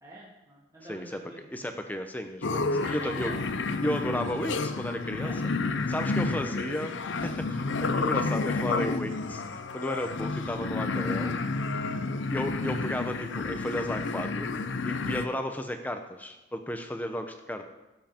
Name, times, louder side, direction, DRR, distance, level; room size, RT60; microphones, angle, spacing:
voice 1, 0.0-1.5 2.7-3.7 5.1-5.5 12.0-12.4, right 1 dB, 15° right, -7 dB, 2.3 m, -46 dB
voice 2, 0.9-1.2 1.5-2.7 2.9-3.3 3.8-5.3 5.9-6.9 7.2-11.4 12.3-14.5 14.8-17.7, equal, 10° left, 6 dB, 0.8 m, -34 dB
sound 1, 2.4-15.3, left 3 dB, 70° left, 0.7 m, -30 dB
17.0 x 7.6 x 4.5 m, 1.0 s
head